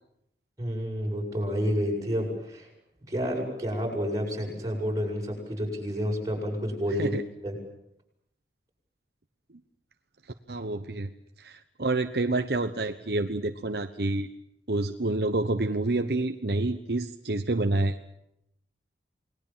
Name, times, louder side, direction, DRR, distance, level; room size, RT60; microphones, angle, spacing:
voice 1, 0.6-2.7 3.0-7.2 7.4-7.6, equal, 20° right, -1 dB, 7.7 m, -30 dB
voice 2, 10.5-11.1 11.4-14.3 14.7-18.1, right 2 dB, 60° right, 7 dB, 1.1 m, -28 dB
28.5 x 20.5 x 7.5 m, 0.78 s
head